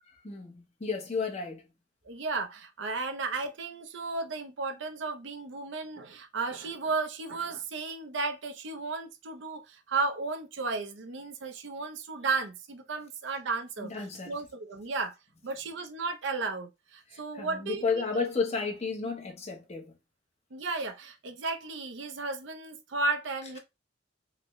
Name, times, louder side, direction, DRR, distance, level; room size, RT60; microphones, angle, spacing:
voice 1, 0.2-1.6 13.8-14.4 17.1-19.9, left 4 dB, 35° left, 0.9 m, -32 dB
voice 2, 2.0-13.9 14.3-15.1 15.4-18.0 19.0-19.1 20.5-23.6, right 3 dB, 90° right, 0.7 m, -34 dB
3.9 x 2.1 x 3.0 m
head